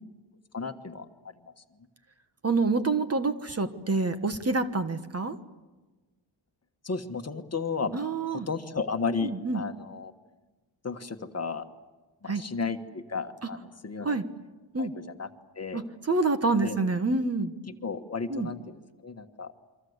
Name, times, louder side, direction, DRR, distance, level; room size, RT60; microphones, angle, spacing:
voice 1, 0.5-1.0 6.8-8.0 8.3-10.1 10.8-11.6 12.2-14.2 14.8-14.9 15.2-15.3 15.6-15.8 16.6-16.8 17.8-18.8 19.0-19.5, left 4 dB, 30° left, 7 dB, 1.4 m, -33 dB
voice 2, 2.4-5.4 7.9-8.5 9.2-9.6 12.3-12.4 14.0-14.3 14.7-15.0 15.7-17.5 18.3-18.5, right 3 dB, 30° right, 9 dB, 1.4 m, -27 dB
28.0 x 25.0 x 8.1 m, 1.2 s
wide cardioid pair, 145°, 47 cm